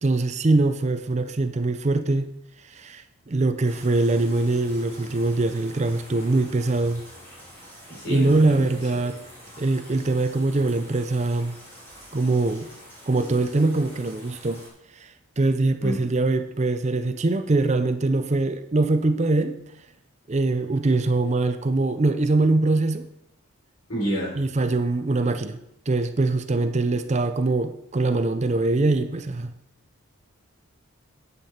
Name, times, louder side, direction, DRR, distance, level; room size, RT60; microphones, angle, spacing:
voice 1, 0.0-2.3 2.6-7.0 8.1-9.2 9.6-11.6 12.1-12.7 13.1-14.6 14.9-15.1 15.4-19.6 20.3-23.0 24.3-25.6 25.9-29.5, right 2 dB, 30° right, 9 dB, 0.5 m, -23 dB
sound 1, 3.6-14.7, equal, 10° left, 3.2 m, -46 dB
voice 2, 7.9-9.0 15.8-16.0 23.9-24.3, equal, 70° left, -3 dB, 4.3 m, -29 dB
9.8 x 8.2 x 4.4 m, 0.80 s
head